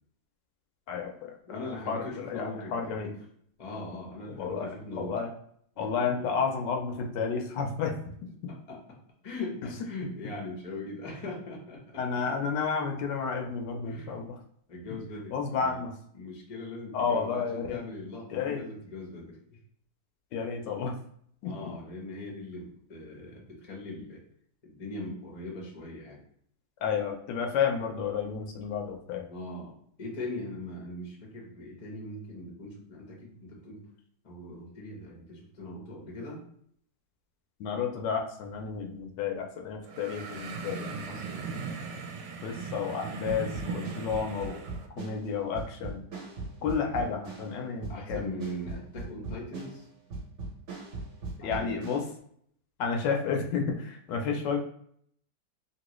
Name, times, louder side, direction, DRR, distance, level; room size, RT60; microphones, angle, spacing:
voice 1, 0.9-1.3 1.9-3.1 4.3-5.3 5.8-7.9 12.0-14.4 15.3-15.9 16.9-17.8 18.3-18.6 20.3-20.9 21.4-21.5 26.8-29.3 37.6-40.9 42.4-44.7 45.0-46.0 46.6-48.3 51.4-52.0 52.8-54.6, left 6 dB, 75° left, 3 dB, 1.2 m, -31 dB
voice 2, 1.5-3.0 3.6-5.1 5.7-5.9 6.2-6.3 8.7-8.8 9.2-12.0 13.8-14.2 14.7-15.8 16.1-19.6 21.4-24.2 24.6-26.2 29.3-33.9 34.2-36.4 41.1-41.5 47.4-47.5 47.9-49.9 51.4-51.8, left 2 dB, 40° left, -2 dB, 0.5 m, -40 dB
sound 1, 39.8-44.9, right 5 dB, 75° right, 1.1 m, -38 dB
sound 2, 43.3-52.1, right 3 dB, 50° right, 0.9 m, -40 dB
3.0 x 2.7 x 3.0 m, 0.66 s
omnidirectional pair, 2.0 m